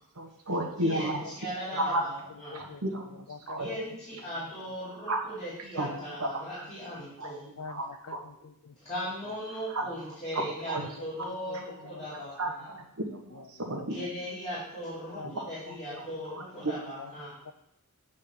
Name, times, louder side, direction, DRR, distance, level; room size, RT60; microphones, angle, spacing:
voice 1, 0.1-1.2 1.8-2.0 2.5-3.7 5.1-5.2 5.7-5.9 6.2-6.4 7.2-7.3 7.7-8.2 9.7-9.8 10.3-10.8 11.5-11.6 12.1-14.0 15.2-15.5 16.0-16.4, right 1 dB, 90° right, 1 dB, 1.4 m, -33 dB
voice 2, 0.8-2.7 3.6-7.5 8.8-12.7 13.9-17.4, equal, 30° left, -9 dB, 2.7 m, -38 dB
voice 3, 2.5-2.8 3.3-3.8 5.8-6.0 7.6-8.7 10.8-11.6 11.9-12.3 14.0-14.1 15.1-15.3 15.7-16.0 16.6-16.7 17.0-17.1 17.5-17.6, left 5 dB, 90° left, 11 dB, 0.5 m, -45 dB
8.2 x 3.7 x 6.8 m, 0.79 s
head